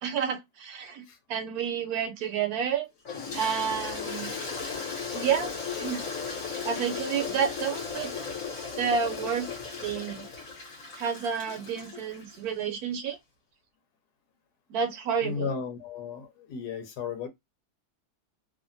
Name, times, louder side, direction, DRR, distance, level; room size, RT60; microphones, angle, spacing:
voice 1, 0.0-2.9 3.3-4.3 5.1-5.5 5.8-6.0 6.6-8.1 8.8-9.5 9.8-10.2 11.0-13.2 14.7-15.5, right 7 dB, 75° right, 1.1 m, -30 dB
Toilet flush, 3.1-12.4, left 5 dB, 60° left, 1.6 m, -36 dB
voice 2, 15.2-17.3, left 6 dB, 85° left, 1.3 m, -34 dB
3.3 x 2.1 x 2.5 m
omnidirectional pair, 1.7 m